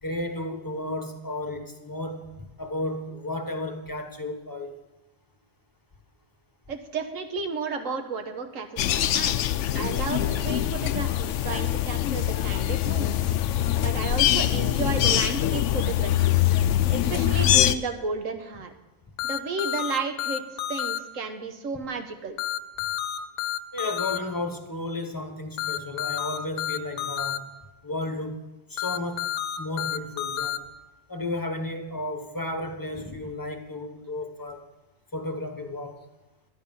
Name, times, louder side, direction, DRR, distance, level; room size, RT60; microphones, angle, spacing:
voice 1, 0.0-2.2 2.6-4.8 23.7-27.5 27.8-28.4 28.7-30.7 31.1-34.6 35.1-36.0, left 2 dB, 15° left, 5 dB, 1.1 m, -33 dB
voice 2, 6.7-9.5 9.7-13.4 13.8-16.3 16.9-18.7 19.2-20.4 20.7-22.4, right 4 dB, 65° right, 6 dB, 1.5 m, -33 dB
sound 1, 8.8-17.8, left 12 dB, 70° left, 0.8 m, -23 dB
sound 2, 19.2-21.0 22.4-24.2 25.6-27.4 28.8-30.6, left 11 dB, 85° left, 1.2 m, -30 dB
11.5 x 11.0 x 5.4 m, 1.0 s
omnidirectional pair, 1.5 m